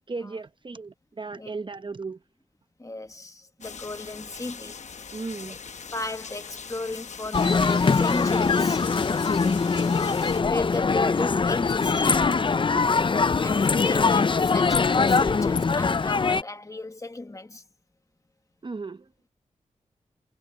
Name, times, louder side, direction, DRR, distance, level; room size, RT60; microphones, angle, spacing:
voice 1, 0.1-2.2 3.6-3.8 5.1-5.6 18.6-19.1, right 3 dB, 40° right, 1.0 m, -36 dB
voice 2, 2.8-4.9 5.5-5.6 5.9-8.9 10.4-12.3 13.4-17.6, left 2 dB, 25° left, 1.4 m, -35 dB
sound 1, 3.6-10.4, left 6 dB, 65° left, 1.0 m, -41 dB
sound 2, 7.3-16.4, left 4 dB, 40° left, 0.6 m, -22 dB
cardioid pair, 55°, 13 cm